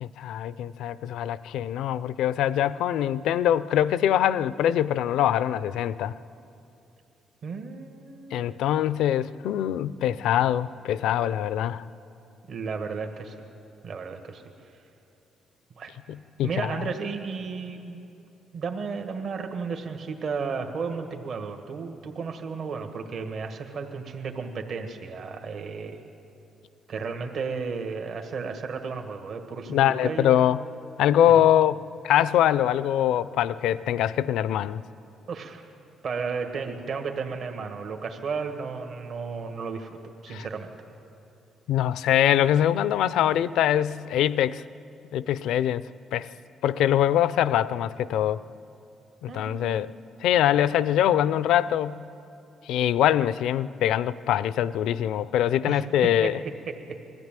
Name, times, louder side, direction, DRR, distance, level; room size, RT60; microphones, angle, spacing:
voice 1, 0.0-6.2 8.3-11.8 16.1-16.7 29.7-30.6 31.0-34.8 40.3-40.5 41.7-44.6 45.1-45.9 46.1-46.3 46.6-48.4 49.2-49.9 50.2-52.0 52.7-56.4, left 11 dB, 85° left, 17 dB, 0.5 m, -23 dB
voice 2, 7.4-9.0 12.5-13.3 13.8-14.4 15.8-15.9 16.4-18.1 18.5-26.0 26.9-30.4 35.3-35.7 36.0-40.0 40.2-40.7 49.3-49.9 55.7-56.3 56.6-57.0, right 5 dB, 60° right, 5 dB, 1.6 m, -33 dB
21.0 x 14.5 x 9.0 m, 2.8 s
cardioid pair, 90°, 0 cm